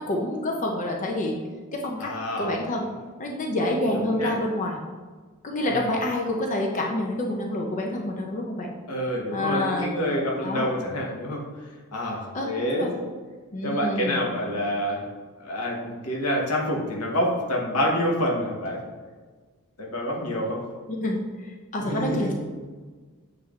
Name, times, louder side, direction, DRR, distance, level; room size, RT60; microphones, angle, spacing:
voice 1, 0.0-1.4 1.7-2.1 2.4-2.9 3.2-4.8 5.4-8.7 9.3-9.9 10.4-10.7 12.3-12.9 13.5-14.3 20.9-22.3, left 1 dB, 35° left, 0 dB, 0.4 m, -28 dB
voice 2, 2.0-2.5 3.9-4.3 5.6-5.9 8.9-11.4 11.9-12.9 13.6-15.0 15.4-18.8 19.8-20.6 21.8-22.3, equal, 90° left, -1 dB, 1.0 m, -27 dB
6.9 x 3.2 x 2.4 m, 1.4 s
head